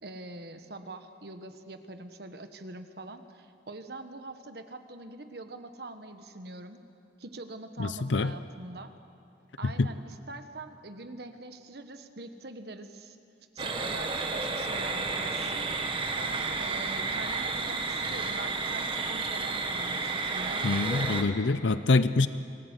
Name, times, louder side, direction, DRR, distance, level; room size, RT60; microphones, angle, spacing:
voice 1, 0.0-6.8 7.2-8.9 9.6-13.2 13.5-15.7 16.2-20.7, right 2 dB, 60° right, 8 dB, 1.3 m, -44 dB
voice 2, 7.8-8.3 9.8-9.9 20.6-22.3, left 3 dB, 85° left, 13 dB, 0.6 m, -25 dB
sound 1, 13.6-21.2, right 3 dB, 30° right, 1.5 m, -31 dB
26.5 x 18.0 x 8.2 m, 2.7 s
head